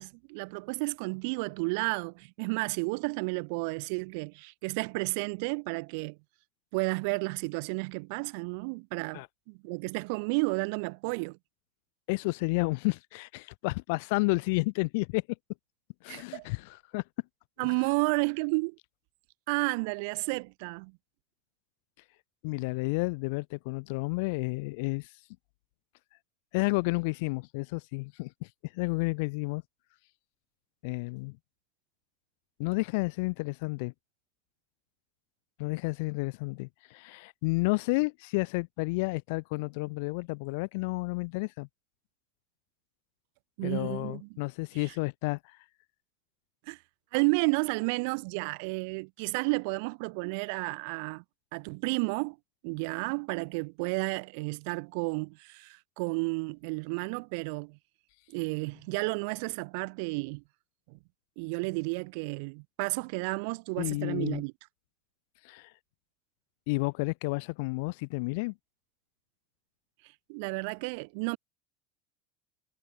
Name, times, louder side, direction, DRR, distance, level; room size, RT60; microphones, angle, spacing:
voice 1, 0.0-6.2 6.7-11.4 16.1-16.5 17.6-18.8 19.5-20.9 43.6-44.3 44.9-45.0 46.7-46.8 47.1-51.2 51.5-52.4 52.6-57.8 58.3-60.4 60.9-61.0 61.4-64.5 70.3-71.4, right 32 dB, 60° right, 3.0 m, -32 dB
voice 2, 12.1-15.2 16.0-17.0 22.4-25.1 26.5-29.6 30.8-31.4 32.6-33.9 35.6-41.7 43.6-45.6 63.8-64.4 65.4-65.7 66.7-68.5, left 27 dB, 65° left, 4.3 m, -31 dB
cardioid pair, 175°, 0 cm